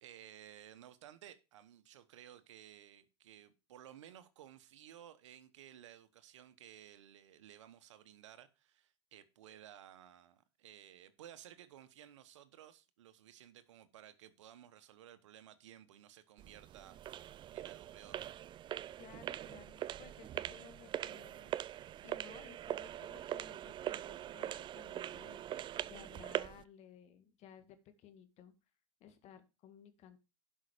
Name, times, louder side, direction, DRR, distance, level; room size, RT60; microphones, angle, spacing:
voice 1, 0.0-18.2, right 11 dB, 85° right, 1.1 m, -56 dB
sound 1, 16.4-26.6, right 12 dB, 30° right, 0.4 m, -42 dB
voice 2, 19.0-28.5 29.0-30.2, left 9 dB, 45° left, 1.9 m, -58 dB
11.5 x 5.7 x 5.0 m
supercardioid pair, 105°, 15 cm